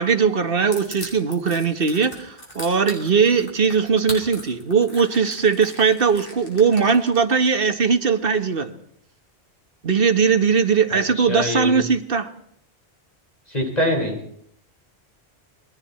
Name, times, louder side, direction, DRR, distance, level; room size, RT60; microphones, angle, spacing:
voice 1, 0.0-8.7 9.8-12.3, right 5 dB, 60° right, 1.6 m, -19 dB
Crushing, 0.7-7.5, left 1 dB, 55° left, 6.0 m, -38 dB
voice 2, 10.9-11.9 13.5-14.2, left 1 dB, 40° left, 5.1 m, -24 dB
28.5 x 21.0 x 4.4 m
omnidirectional pair, 1.1 m